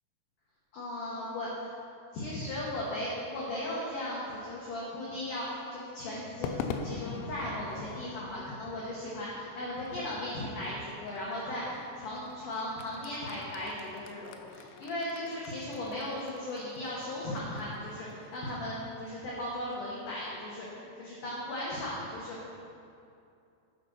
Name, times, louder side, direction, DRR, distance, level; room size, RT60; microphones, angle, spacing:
voice 1, 0.7-1.7 2.1-6.6 6.8-22.5, left 1 dB, 65° left, -6 dB, 2.1 m, -37 dB
Crowd / Fireworks, 6.4-20.8, left 5 dB, 90° left, 3.0 m, -45 dB
10.5 x 5.1 x 6.3 m, 2.6 s
omnidirectional pair, 5.3 m